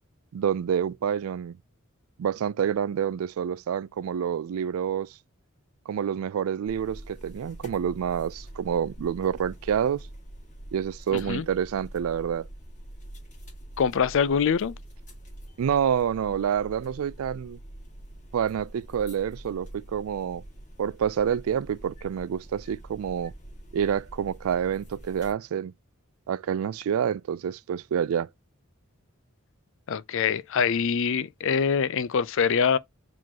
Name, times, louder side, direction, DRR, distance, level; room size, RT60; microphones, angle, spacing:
voice 1, 0.3-1.5 2.2-5.1 5.9-10.1 10.7-12.5 15.6-17.6 18.3-20.4 20.8-23.3 23.7-25.7 26.3-28.3, right 8 dB, 75° right, 0.3 m, -28 dB
sound 1, 6.7-25.3, right 1 dB, 35° left, 1.9 m, -45 dB
voice 2, 11.1-11.5 13.8-14.7 29.9-32.8, left 6 dB, 65° left, 0.5 m, -24 dB
5.0 x 3.7 x 2.8 m
head